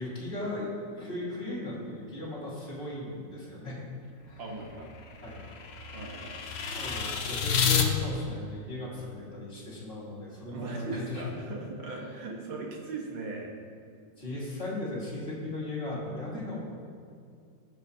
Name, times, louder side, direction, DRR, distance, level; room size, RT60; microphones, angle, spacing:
voice 1, 0.0-3.8 4.3-4.4 5.2-5.4 6.7-11.2 14.2-16.6, left 2 dB, 30° left, -6 dB, 2.8 m, -37 dB
sound 1, 4.2-7.9, left 6 dB, 70° left, 0.6 m, -30 dB
voice 2, 4.4-4.9 5.9-6.4 10.5-13.5, right 3 dB, 80° right, -1 dB, 2.1 m, -38 dB
16.5 x 6.1 x 2.8 m, 2.4 s
omnidirectional pair, 2.0 m